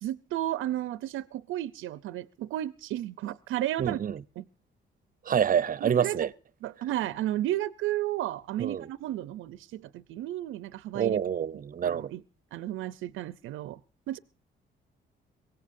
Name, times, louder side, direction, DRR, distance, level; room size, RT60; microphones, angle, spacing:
voice 1, 0.0-4.0 4.4-4.5 5.8-6.2 6.6-11.2 11.8-12.2 12.5-13.8 14.1-14.2, right 13 dB, 85° right, 0.6 m, -33 dB
voice 2, 3.8-4.2 5.2-6.3 8.6-8.9 10.9-12.1, right 8 dB, 45° right, 0.7 m, -27 dB
23.5 x 17.5 x 2.6 m
cardioid pair, 90°, 20 cm